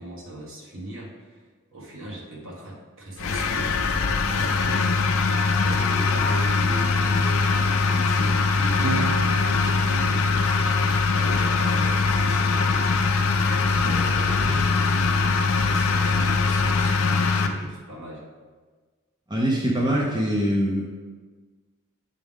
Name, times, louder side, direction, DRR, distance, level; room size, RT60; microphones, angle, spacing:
voice 1, 0.0-1.4 1.7-5.1 5.4-12.9 13.6-18.2, right 1 dB, 60° right, -4 dB, 1.5 m, -38 dB
sound 1, 3.2-17.5, left 4 dB, 65° left, 0.5 m, -22 dB
Electric guitar / Bass guitar, 8.8-15.2, right 7 dB, 85° right, 0.4 m, -39 dB
voice 2, 19.3-20.8, equal, 20° right, -3 dB, 0.6 m, -23 dB
8.3 x 3.5 x 3.6 m, 1.4 s
head